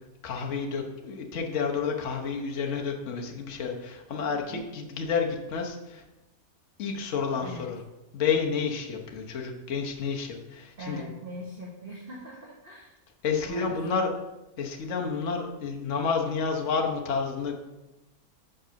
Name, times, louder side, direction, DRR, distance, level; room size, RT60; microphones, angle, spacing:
voice 1, 0.2-6.0 6.8-7.8 8.1-11.0 13.2-14.1 14.6-17.6, left 5 dB, 60° left, 1 dB, 1.3 m, -30 dB
voice 2, 10.8-12.9 13.4-14.1, equal, 40° right, -3 dB, 1.2 m, -41 dB
6.2 x 5.4 x 5.8 m, 1.0 s
omnidirectional pair, 1.6 m